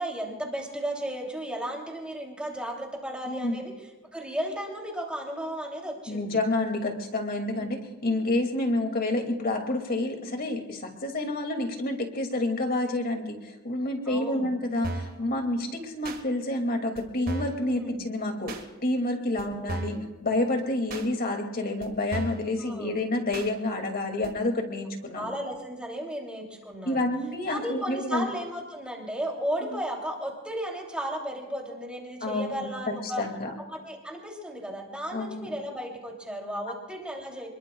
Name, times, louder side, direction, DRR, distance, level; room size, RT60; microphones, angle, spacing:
voice 1, 0.0-3.7 4.1-6.4 7.5-7.8 14.1-14.5 17.6-18.1 19.3-20.1 22.6-23.0 25.1-27.0 27.5-33.2 33.7-37.5, equal, 5° right, -1 dB, 3.0 m, -35 dB
voice 2, 3.3-3.6 6.1-18.6 18.8-20.0 20.2-25.3 26.9-28.3 32.2-32.7 33.2-33.5 35.1-35.5, left 2 dB, 45° left, 3 dB, 2.4 m, -29 dB
sound 1, 14.8-15.2 16.0-16.2 17.0-17.1 17.3-17.6 18.5-18.6 19.4-19.5 19.7-20.0 20.9-21.1 21.8-21.9 22.1-22.5 23.3-23.5 24.2-24.3, right 2 dB, 40° right, 1.7 m, -34 dB
28.0 x 22.0 x 2.4 m, 1.1 s
head